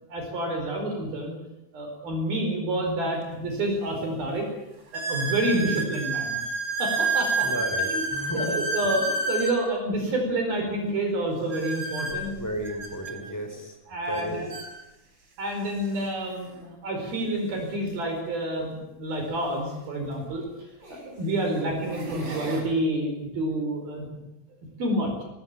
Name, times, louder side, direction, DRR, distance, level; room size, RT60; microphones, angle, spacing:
voice 1, 0.1-1.4 1.7-4.5 4.9-6.4 6.8-7.5 7.9-8.1 8.3-12.3 13.9-14.5 15.4-20.5 20.9-24.1 24.8-25.2, right 1 dB, 50° right, 2 dB, 6.3 m, -28 dB
sound 1, 3.2-3.3 4.0-4.1 4.9-9.6 11.5-13.1 14.1-14.2 14.5-14.7 15.5-15.6 17.8-17.9 20.0-20.1 20.8-21.1 21.7-22.6, right 2 dB, 25° right, 5.7 m, -29 dB
voice 2, 7.4-8.6 12.4-13.7 14.1-14.5, right 1 dB, 5° left, 4 dB, 3.8 m, -33 dB
22.5 x 21.0 x 8.5 m, 0.93 s
omnidirectional pair, 5.4 m